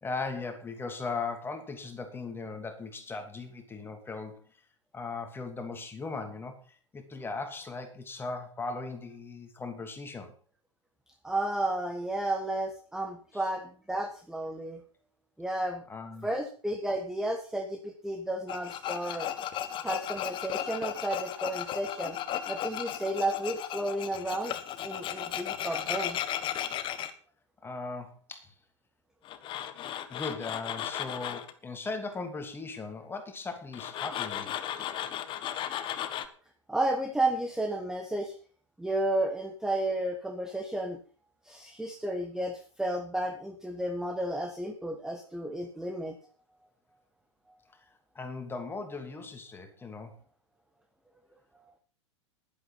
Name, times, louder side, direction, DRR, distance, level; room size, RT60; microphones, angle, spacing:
voice 1, 0.0-4.4 4.9-10.3 15.9-16.3 27.6-28.5 30.1-34.5 48.1-50.2, left 3 dB, 15° left, 6 dB, 2.9 m, -38 dB
voice 2, 11.2-14.8 15.4-15.8 16.2-19.3 19.8-22.2 22.5-24.5 24.8-26.2 36.7-38.3 38.8-41.0 41.4-46.2, right 1 dB, 5° right, 5 dB, 1.4 m, -32 dB
Tools, 18.5-27.1 29.2-31.5 33.7-36.3, left 10 dB, 30° left, 1.4 m, -35 dB
11.5 x 11.0 x 5.6 m, 0.41 s
figure-of-eight pair, 100°, 16 cm